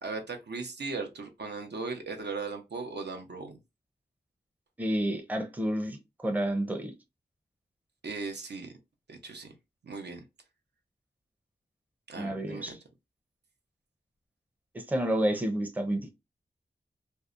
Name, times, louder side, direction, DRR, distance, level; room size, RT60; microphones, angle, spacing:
voice 1, 0.0-3.6 8.0-8.7 9.1-9.5 9.8-10.2 12.1-12.8, right 4 dB, 70° right, 0.6 m, -38 dB
voice 2, 4.8-6.9 12.2-12.8 14.7-16.1, right 1 dB, 10° right, 0.5 m, -30 dB
2.6 x 2.0 x 2.4 m
wide cardioid pair, 80°, 18 cm